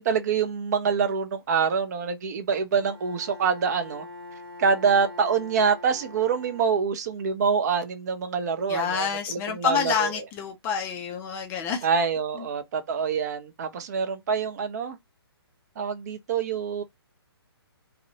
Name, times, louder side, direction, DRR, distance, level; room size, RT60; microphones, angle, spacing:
voice 1, 0.0-4.1 4.6-10.1 11.8-15.0 15.8-16.8, right 6 dB, 40° right, 0.5 m, -26 dB
Bowed string instrument, 2.7-7.3, left 2 dB, 70° right, 1.0 m, -43 dB
voice 2, 8.7-11.9 12.3-12.5, left 6 dB, 15° left, 0.3 m, -28 dB
2.5 x 2.0 x 2.6 m
figure-of-eight pair, 135°, 14 cm